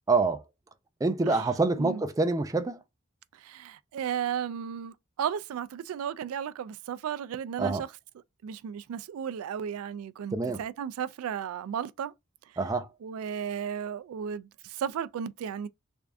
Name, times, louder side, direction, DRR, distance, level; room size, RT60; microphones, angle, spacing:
voice 1, 0.1-0.4 1.0-2.8 7.6-7.8 10.3-10.6 12.6-12.9, right 3 dB, 15° right, 0.4 m, -26 dB
voice 2, 3.3-7.9 8.4-12.1 13.0-15.7, right 8 dB, 85° right, 0.3 m, -34 dB
3.5 x 3.4 x 2.4 m
head